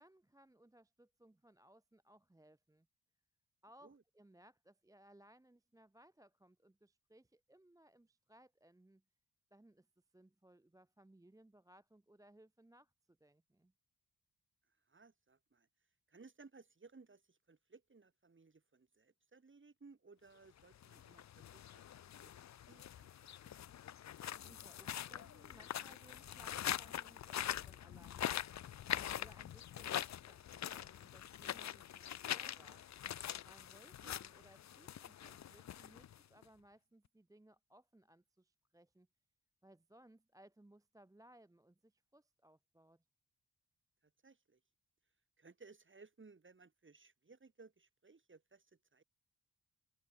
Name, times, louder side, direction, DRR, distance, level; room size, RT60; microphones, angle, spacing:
voice 1, 0.0-2.9 3.6-9.0 9.5-13.7 24.4-28.5 28.9-32.8 33.4-39.1 39.6-43.1, right 1 dB, 10° right, 0.8 m, -64 dB
voice 2, 14.7-15.7 16.1-21.8 22.2-23.4 34.0-34.1 44.0-44.6 45.4-49.0, right 4 dB, 30° right, 3.6 m, -62 dB
sound 1, 20.7-36.4, left 10 dB, 50° left, 0.5 m, -44 dB
wide cardioid pair, 115°, 37 cm